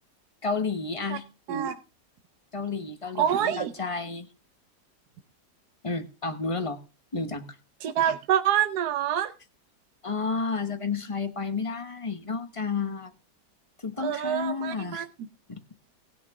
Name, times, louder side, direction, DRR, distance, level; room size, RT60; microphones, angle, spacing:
voice 1, 0.4-1.2 2.5-4.3 5.8-6.8 7.1-7.5 10.0-13.1 13.8-15.0 15.5-15.6, left 4 dB, 25° left, 9 dB, 1.0 m, -31 dB
voice 2, 3.2-3.7 7.8-9.3 14.0-15.0, right 10 dB, 70° right, 8 dB, 1.3 m, -26 dB
19.0 x 6.9 x 3.6 m, 0.31 s
omnidirectional pair, 1.8 m